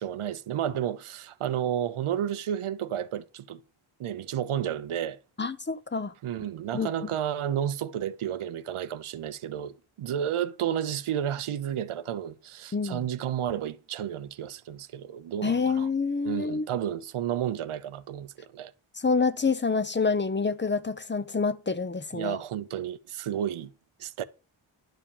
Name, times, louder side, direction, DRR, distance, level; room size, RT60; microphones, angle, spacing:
voice 1, 0.0-3.6 4.0-5.2 6.2-15.9 16.2-18.3 18.5-18.7 22.1-23.7 24.0-24.2, right 10 dB, 80° right, 0.8 m, -31 dB
voice 2, 5.4-6.1 6.7-6.9 12.7-13.1 15.4-16.7 19.0-22.4, left 4 dB, 25° left, 0.7 m, -27 dB
11.5 x 4.9 x 7.1 m
wide cardioid pair, 145°, 49 cm